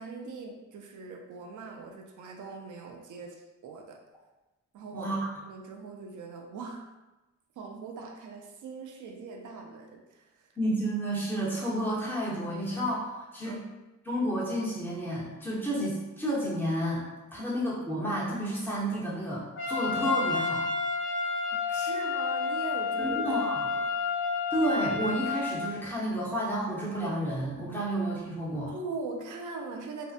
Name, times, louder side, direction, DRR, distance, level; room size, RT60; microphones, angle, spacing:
voice 1, 0.0-4.0 4.7-5.1 5.4-6.9 7.6-10.5 13.4-13.7 17.3-17.5 21.7-23.9 28.7-30.1, right 4 dB, 80° right, 3 dB, 0.4 m, -41 dB
voice 2, 10.6-13.6 14.0-17.0 17.3-20.6 23.0-23.6 24.5-28.7, right 1 dB, 5° left, -7 dB, 0.9 m, -31 dB
Trumpet, 19.6-25.6, left 4 dB, 40° left, 0.6 m, -30 dB
2.6 x 2.1 x 2.4 m, 1.1 s
cardioid pair, 85°, 30 cm